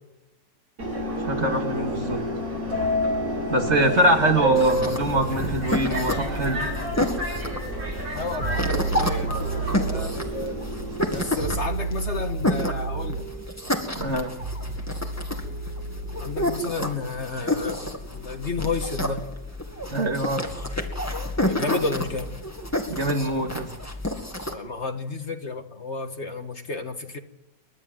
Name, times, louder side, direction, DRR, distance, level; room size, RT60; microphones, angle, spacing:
Subway metro underground, 0.8-11.5, right 1 dB, 60° right, 6.4 m, -29 dB
voice 1, 1.2-2.2 3.5-6.7 14.0-14.3 19.9-20.4 22.9-23.7, right 1 dB, 45° right, 4 dB, 2.6 m, -24 dB
sound 1, 4.6-24.5, left 1 dB, 10° left, 2.1 m, -30 dB
sound 2, 4.6-21.8, right 4 dB, 75° right, 2.8 m, -34 dB
voice 2, 8.1-10.6 11.1-13.3 16.2-19.2 21.5-22.3 24.5-27.2, left 3 dB, 45° left, 6 dB, 1.8 m, -31 dB
29.5 x 12.5 x 7.7 m, 1.0 s
omnidirectional pair, 1.7 m